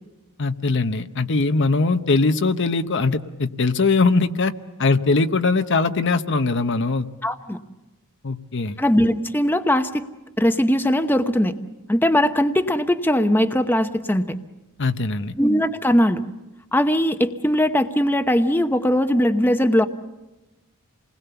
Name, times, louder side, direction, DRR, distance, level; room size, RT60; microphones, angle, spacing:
voice 1, 0.4-4.5 4.8-7.1 8.2-8.8 14.8-15.4, left 3 dB, 55° left, 9 dB, 0.9 m, -21 dB
voice 2, 7.2-7.6 8.8-10.0 10.4-11.5 11.9-14.3 15.4-16.2 16.7-19.9, equal, 10° left, 8 dB, 0.9 m, -20 dB
28.5 x 20.5 x 7.0 m, 1.0 s
head